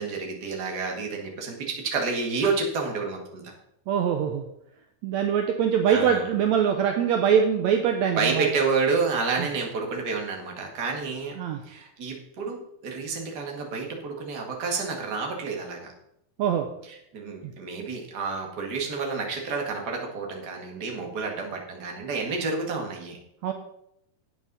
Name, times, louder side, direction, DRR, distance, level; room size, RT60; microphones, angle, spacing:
voice 1, 0.0-3.5 5.9-6.3 8.1-11.4 11.7-15.9 17.1-23.2, right 4 dB, 40° right, 1 dB, 1.7 m, -29 dB
voice 2, 3.9-4.4 5.0-8.5 11.4-11.6 16.4-16.7 23.4-23.5, right 8 dB, 80° right, 5 dB, 1.6 m, -23 dB
11.0 x 8.7 x 4.0 m, 0.78 s
omnidirectional pair, 4.1 m